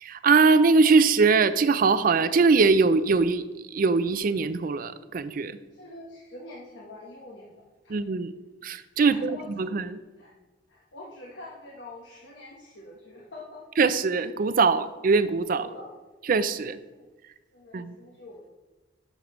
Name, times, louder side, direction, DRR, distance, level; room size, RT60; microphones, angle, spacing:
voice 1, 0.0-3.4 3.7-5.6 7.9-8.3 8.6-10.0 13.8-15.7 16.3-16.8 17.7-17.9, right 4 dB, 50° right, 13 dB, 0.4 m, -22 dB
voice 2, 5.7-8.0 9.0-9.8 10.2-10.3 10.7-13.6 15.5-15.9 16.9-17.1 17.5-18.5, left 2 dB, 75° left, -3 dB, 1.2 m, -45 dB
11.0 x 6.4 x 3.1 m, 1.2 s
head